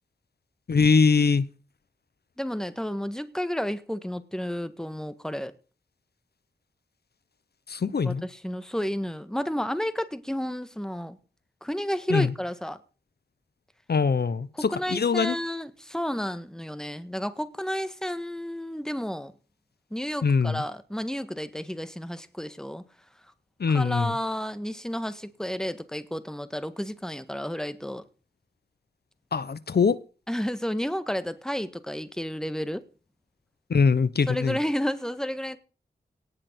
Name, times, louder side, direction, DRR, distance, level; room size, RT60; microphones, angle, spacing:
voice 1, 0.7-1.5 7.7-8.2 12.1-12.3 13.9-15.3 20.2-20.6 23.6-24.1 29.3-30.0 33.7-34.6, left 5 dB, 70° left, 1.0 m, -22 dB
voice 2, 2.4-5.5 8.0-11.2 11.6-12.8 14.5-19.3 19.9-22.8 23.7-28.0 30.3-32.8 34.3-35.6, equal, 5° left, 1.6 m, -31 dB
18.5 x 6.6 x 8.0 m
wide cardioid pair, 75°, 17 cm